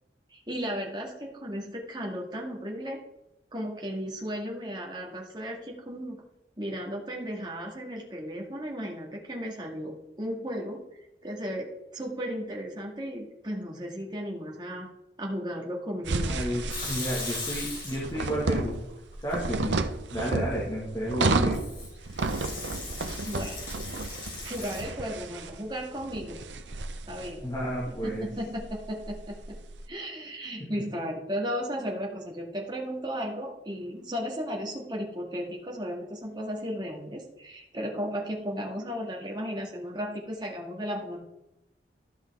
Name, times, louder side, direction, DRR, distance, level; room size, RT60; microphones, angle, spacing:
voice 1, 0.3-3.0 3.5-6.2 6.6-10.8 11.2-14.9 15.2-16.3 23.2-23.6 24.4-26.4 27.1-27.4 27.9-29.6 29.9-41.2, equal, 25° right, -1 dB, 1.8 m, -35 dB
sound 1, 16.1-29.8, right 3 dB, 80° right, 0.7 m, -32 dB
voice 2, 16.3-18.8 19.2-19.8 20.1-21.6 27.4-28.3, equal, 20° left, -5 dB, 1.9 m, -31 dB
Water tap faucet / Sink (filling or washing) / Liquid, 16.7-18.4 18.7-19.5 21.5-24.8, left 3 dB, 50° left, 3.3 m, -38 dB
13.0 x 5.6 x 3.6 m, 0.90 s
head